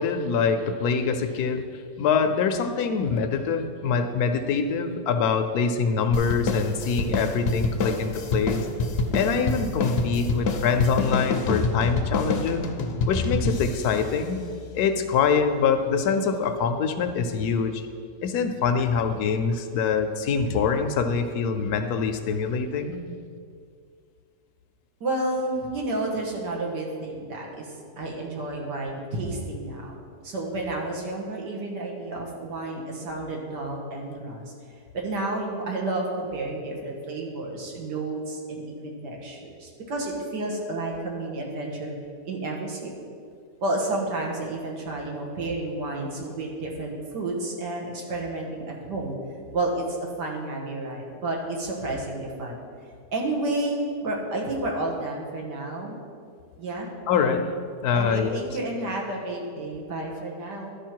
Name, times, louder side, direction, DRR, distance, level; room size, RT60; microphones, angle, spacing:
voice 1, 0.0-8.7 9.1-12.6 13.1-14.4 14.7-17.9 18.2-23.0 57.1-57.5 57.8-58.4, left 5 dB, 75° left, 8 dB, 1.1 m, -24 dB
sound 1, 6.1-15.0, left 3 dB, 55° left, 0.7 m, -27 dB
voice 2, 25.0-29.9 30.2-34.5 34.9-41.9 42.3-42.9 43.6-49.1 49.5-52.6 53.1-56.0 56.6-56.9 57.9-60.7, right 2 dB, 85° right, -1 dB, 2.0 m, -31 dB
12.0 x 5.2 x 4.5 m, 2.2 s
omnidirectional pair, 1.8 m